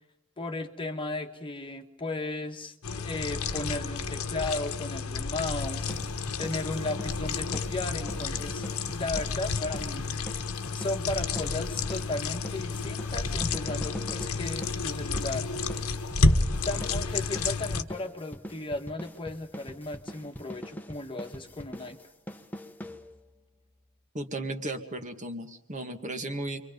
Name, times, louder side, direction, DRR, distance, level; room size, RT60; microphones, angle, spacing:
voice 1, 0.4-10.4 10.7-15.5 16.6-22.0, left 2 dB, 25° left, 4 dB, 1.5 m, -35 dB
sound 1, 2.8-17.8, left 3 dB, 85° left, 1.4 m, -30 dB
sound 2, 5.6-23.4, equal, 10° left, 1.2 m, -43 dB
voice 2, 24.1-26.6, right 2 dB, 35° right, 5 dB, 2.0 m, -35 dB
29.0 x 24.0 x 5.4 m, 0.76 s
head